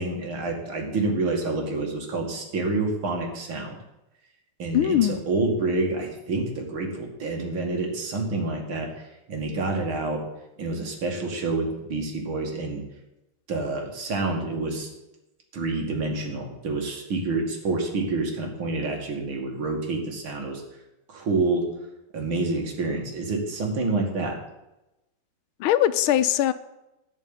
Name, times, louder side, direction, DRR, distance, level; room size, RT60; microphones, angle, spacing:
voice 1, 0.0-3.8 4.6-10.2 10.6-12.8 13.5-14.9 15.5-20.6 21.1-21.7 22.1-24.4, right 3 dB, 75° right, 1 dB, 3.0 m, -28 dB
voice 2, 4.7-5.2 25.6-26.5, left 12 dB, 85° left, 14 dB, 1.5 m, -21 dB
15.5 x 5.3 x 9.0 m, 0.95 s
omnidirectional pair, 2.3 m